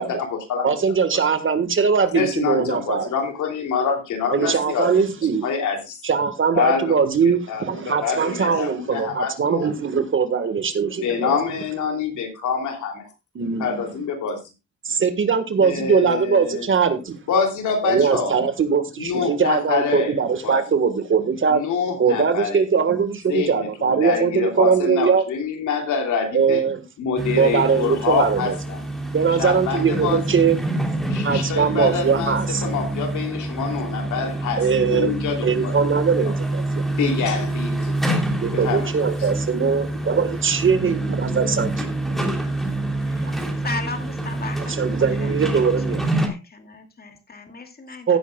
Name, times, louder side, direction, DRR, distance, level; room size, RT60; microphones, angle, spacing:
voice 1, 0.0-0.7 2.1-5.0 5.4-6.0 6.5-6.9 7.5-9.7 11.0-13.1 13.6-14.4 15.6-16.7 17.3-18.3 19.0-20.2 20.4-20.6 21.5-22.6 23.3-26.6 27.0-28.8 29.4-30.4 31.1-32.4 32.6-35.8 36.2-36.3 37.0-37.9 38.6-38.9, left 6 dB, 75° left, 3.1 m, -26 dB
voice 2, 0.6-3.1 4.3-5.5 6.0-11.3 13.4-13.8 14.9-17.2 17.8-21.6 22.0-25.2 26.3-26.8 27.4-28.5 29.1-30.6 31.2-32.6 34.6-35.2 35.4-36.9 38.4-42.3 43.2-43.3 44.7-46.0 48.1-48.2, right 6 dB, 40° right, 1.6 m, -21 dB
sound 1, 27.2-46.3, right 2 dB, ahead, 3.2 m, -26 dB
voice 3, 43.0-45.6 46.0-48.2, left 3 dB, 30° left, 2.4 m, -36 dB
16.5 x 8.4 x 2.3 m
cardioid pair, 90°, 30 cm